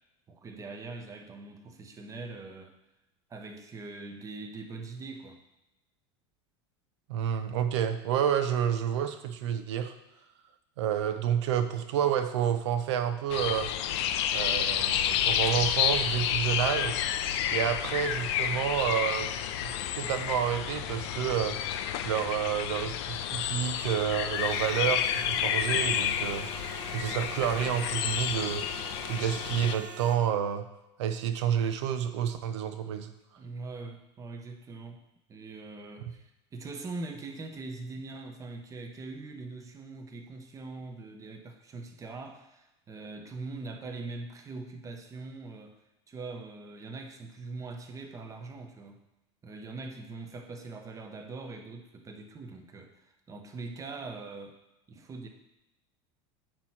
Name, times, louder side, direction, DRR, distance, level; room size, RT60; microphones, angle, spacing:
voice 1, 0.3-2.7 3.3-5.4 33.4-35.0 35.3-45.7 46.1-49.0 49.4-54.6 54.9-55.3, right 3 dB, 20° right, 5 dB, 1.0 m, -42 dB
voice 2, 7.1-9.9 10.8-13.7 14.3-17.0 17.5-19.3 19.6-21.6 22.0-26.5 26.9-28.7 29.1-30.6 31.0-33.1, right 9 dB, 80° right, 9 dB, 0.7 m, -29 dB
sound 1, 13.3-29.7, left 10 dB, 70° left, 0.5 m, -30 dB
sound 2, 24.3-30.2, right 5 dB, 50° right, 1.0 m, -44 dB
8.6 x 3.1 x 5.8 m, 0.92 s
supercardioid pair, 120°, 14 cm